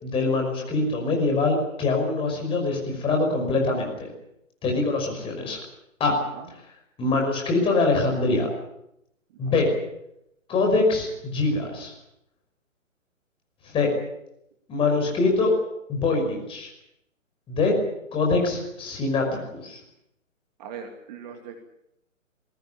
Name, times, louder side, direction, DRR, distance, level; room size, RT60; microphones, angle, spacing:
voice 1, 0.0-4.1 4.6-5.6 6.0-6.1 6.5-6.6 7.0-8.5 9.4-9.7 10.5-11.9 13.6-13.9 14.7-15.5 15.9-16.7 17.5-17.7 18.1-19.8, left 3 dB, 15° left, 1 dB, 5.6 m, -24 dB
voice 2, 6.1-6.5 9.3-9.5 20.6-21.6, right 7 dB, 30° right, 4 dB, 2.6 m, -40 dB
21.5 x 18.5 x 8.9 m, 0.81 s
figure-of-eight pair, 140°, 41 cm